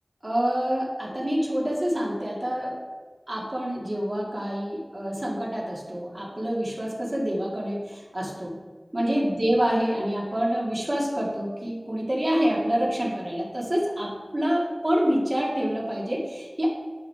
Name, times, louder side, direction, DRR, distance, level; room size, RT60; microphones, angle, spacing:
voice 1, 0.2-2.8 3.3-8.5 8.9-16.7, equal, 45° right, -4 dB, 2.0 m, -27 dB
11.0 x 4.2 x 3.3 m, 1.4 s
wide cardioid pair, 45°, 0 cm